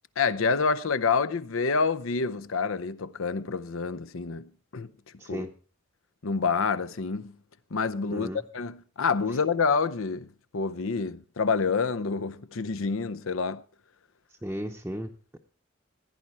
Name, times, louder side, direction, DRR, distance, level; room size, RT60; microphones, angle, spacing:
voice 1, 0.2-4.9 5.3-5.5 6.2-7.3 7.7-8.3 8.5-10.3 10.5-13.6, left 5 dB, 80° left, 0.7 m, -27 dB
voice 2, 5.2-5.5 8.1-8.4 9.3-9.4 14.4-15.4, equal, 10° right, 0.7 m, -35 dB
16.0 x 9.6 x 4.3 m
head